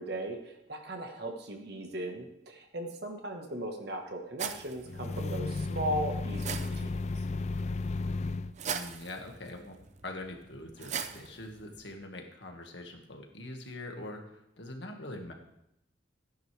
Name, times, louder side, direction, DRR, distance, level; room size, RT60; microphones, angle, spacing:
voice 1, 0.0-6.9, right 1 dB, 55° right, 3 dB, 1.4 m, -37 dB
sound 1, 4.4-11.9, right 7 dB, 35° right, 0.6 m, -42 dB
sound 2, 4.9-8.5, left 3 dB, 35° left, 0.3 m, -34 dB
voice 2, 8.7-9.8 10.0-15.3, left 1 dB, 65° left, 2 dB, 1.9 m, -43 dB
15.5 x 10.5 x 3.4 m, 0.81 s
head